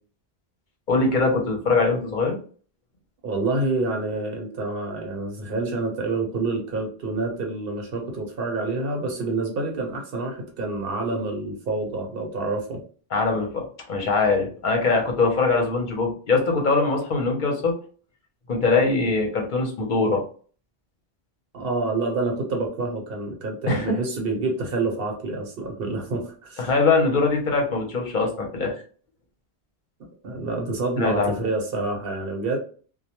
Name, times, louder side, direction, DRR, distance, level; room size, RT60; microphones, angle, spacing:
voice 1, 0.9-2.4 13.1-17.7 18.5-20.2 23.7-23.9 26.6-28.8 31.0-31.4, left 3 dB, 50° left, 1 dB, 0.8 m, -22 dB
voice 2, 3.2-12.8 21.5-26.6 30.2-32.6, right 3 dB, 60° right, 1 dB, 0.9 m, -27 dB
2.2 x 2.1 x 2.8 m, 0.41 s
omnidirectional pair, 1.1 m